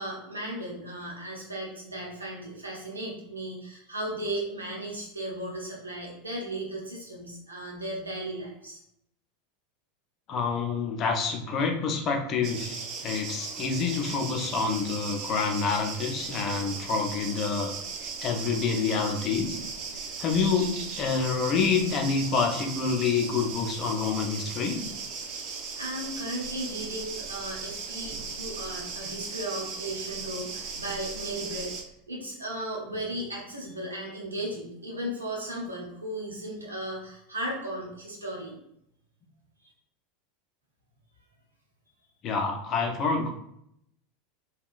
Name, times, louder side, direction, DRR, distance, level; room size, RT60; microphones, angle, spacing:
voice 1, 0.0-8.8 25.4-31.7 32.1-38.6 39.6-39.7, right 1 dB, 85° right, -2 dB, 0.8 m, -36 dB
voice 2, 10.3-17.7 18.0-19.6 20.2-24.9 42.2-43.3, left 5 dB, 40° left, 3 dB, 0.6 m, -27 dB
sound 1, 12.4-31.8, right 5 dB, 50° right, 0.5 m, -37 dB
3.6 x 2.3 x 2.4 m, 0.74 s
figure-of-eight pair, 80°, 0 cm